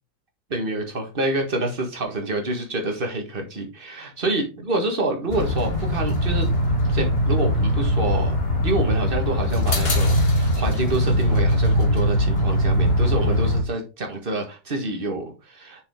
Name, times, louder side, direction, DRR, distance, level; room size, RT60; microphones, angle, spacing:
voice 1, 0.5-6.5 6.8-8.3 8.6-15.8, right 2 dB, 30° right, 3 dB, 1.5 m, -27 dB
sound 1, 5.3-13.6, left 1 dB, 35° left, 1.7 m, -21 dB
6.6 x 5.0 x 3.6 m, 0.31 s
omnidirectional pair, 2.0 m